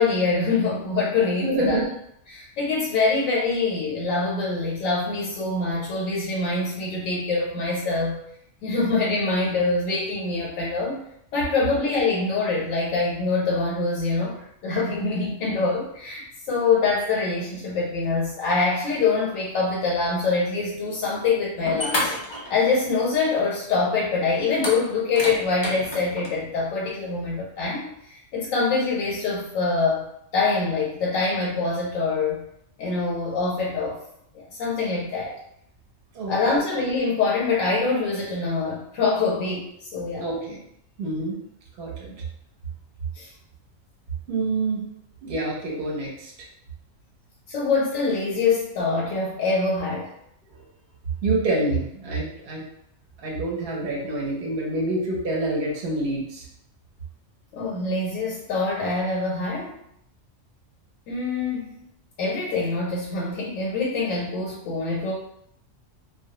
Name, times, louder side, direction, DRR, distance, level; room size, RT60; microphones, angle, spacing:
voice 1, 0.0-1.8 2.3-8.2 8.6-11.0 11.3-22.1 22.5-30.1 30.3-32.4 32.8-34.0 34.3-35.3 36.3-40.3 42.1-42.2 43.1-43.3 47.5-50.1 57.5-59.7 61.1-61.8 62.2-65.1, left 3 dB, 90° left, -4 dB, 1.0 m, -24 dB
voice 2, 1.4-1.8 36.1-36.6 40.2-40.6 41.0-41.4 41.8-42.1 44.3-44.8 45.2-46.3 50.5-50.6 51.2-52.6 53.2-56.5, right 2 dB, 55° right, -3 dB, 0.8 m, -27 dB
sound 1, 21.6-23.0 23.3-23.4 24.5-26.3, left 1 dB, 45° left, 0.3 m, -30 dB
2.2 x 2.1 x 2.8 m, 0.74 s
omnidirectional pair, 1.3 m